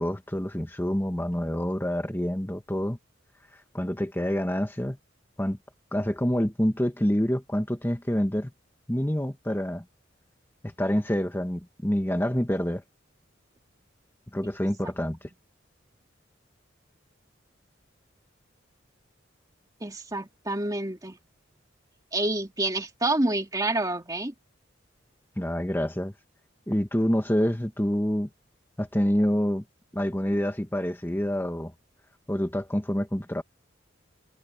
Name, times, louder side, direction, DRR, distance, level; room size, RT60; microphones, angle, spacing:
voice 1, 0.0-3.0 3.7-5.0 5.4-5.6 5.9-8.5 8.9-9.8 10.6-12.8 14.3-15.3 25.4-26.1 26.7-28.3 28.8-29.6 29.9-31.7 32.3-33.4, equal, 10° left, 1.4 m, -27 dB
voice 2, 19.8-21.2 22.1-24.3, right 2 dB, 20° right, 2.1 m, -28 dB
head